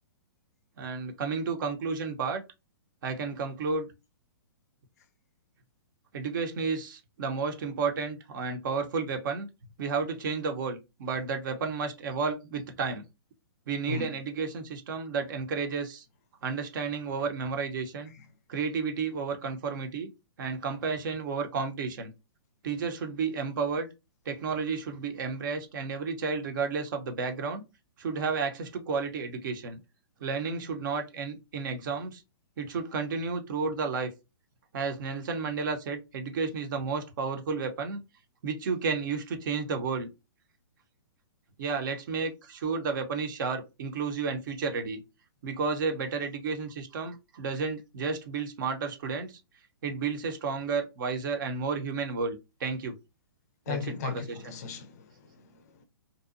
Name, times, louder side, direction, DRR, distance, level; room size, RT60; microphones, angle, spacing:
voice 1, 0.8-2.4 3.0-3.9 6.1-9.5 9.8-13.0 13.7-16.0 16.4-18.1 18.5-20.1 20.4-22.1 22.6-23.9 24.3-27.6 28.0-29.8 30.2-32.2 32.6-34.1 34.7-38.0 38.4-40.1 41.6-45.0 45.4-49.4 49.8-52.9 53.7-54.6, right 5 dB, 50° right, 0.7 m, -32 dB
voice 2, 53.7-55.8, left 5 dB, 40° left, 0.4 m, -37 dB
2.6 x 2.2 x 2.5 m
hypercardioid pair, 155°, 13 cm